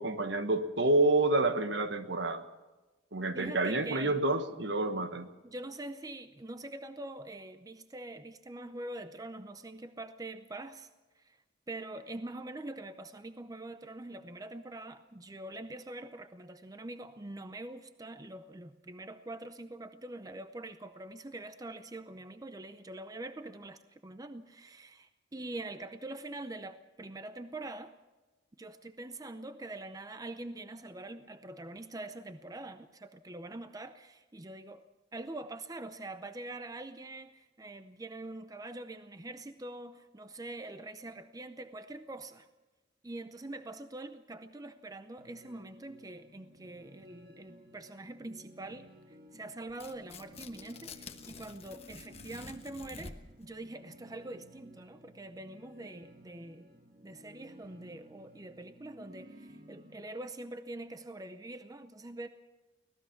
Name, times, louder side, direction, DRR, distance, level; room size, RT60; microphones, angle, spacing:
voice 1, 0.0-2.4 3.1-5.3, right 2 dB, 65° right, 9 dB, 1.3 m, -28 dB
voice 2, 3.3-4.2 5.4-10.9 11.1-27.9 28.6-34.9 35.1-42.5 43.0-56.7 57.0-62.3, right 2 dB, 20° right, 10 dB, 0.6 m, -44 dB
sound 1, 45.2-60.0, equal, 45° right, 2.1 m, -56 dB
Tearing, 49.7-53.4, left 4 dB, 35° left, 1.2 m, -49 dB
24.5 x 18.0 x 5.9 m, 1.2 s
head